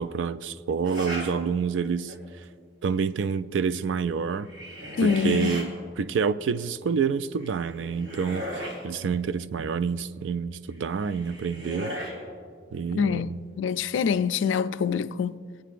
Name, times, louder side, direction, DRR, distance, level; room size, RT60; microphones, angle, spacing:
voice 1, 0.0-2.1 2.8-4.5 5.0-5.7 6.0-11.9 12.7-13.4, right 6 dB, 85° right, 0.4 m, -28 dB
sound 1, 0.8-1.3 1.8-2.3 4.3-5.7 7.4-8.8 10.8-12.2, equal, 65° right, 3.4 m, -36 dB
voice 2, 5.0-5.6 12.9-15.4, left 6 dB, 90° left, 0.3 m, -25 dB
26.0 x 9.1 x 2.5 m
head